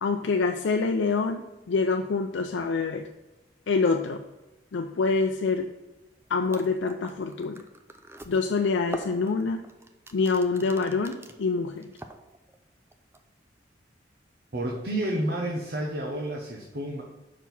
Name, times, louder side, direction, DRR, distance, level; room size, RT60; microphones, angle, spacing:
voice 1, 0.0-3.1 3.7-4.2 4.7-5.7 6.3-7.6 8.3-9.6 10.1-11.9, left 4 dB, 80° left, 4 dB, 0.5 m, -26 dB
sound 1, 6.2-6.3 6.4-11.4 11.8-12.6 12.9-13.2, right 2 dB, 15° right, 0.4 m, -43 dB
voice 2, 14.5-17.0, right 1 dB, 55° right, -1 dB, 1.0 m, -30 dB
6.0 x 4.6 x 5.4 m, 1.0 s
head